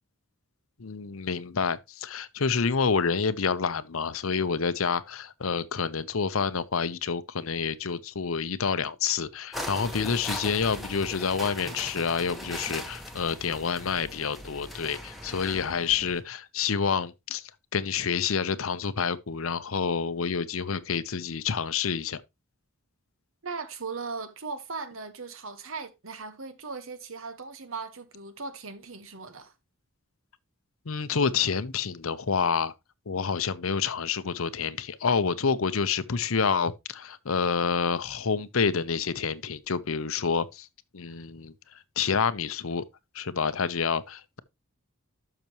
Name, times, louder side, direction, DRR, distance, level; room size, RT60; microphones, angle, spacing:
voice 1, 0.8-22.2 30.9-32.7 33.1-40.7 40.9-41.5 42.0-42.8 43.1-44.4, left 5 dB, 75° left, 0.7 m, -28 dB
sound 1, 9.5-16.2, equal, ahead, 1.2 m, -39 dB
voice 2, 23.4-29.5, right 4 dB, 70° right, 1.3 m, -38 dB
12.0 x 6.0 x 3.0 m
head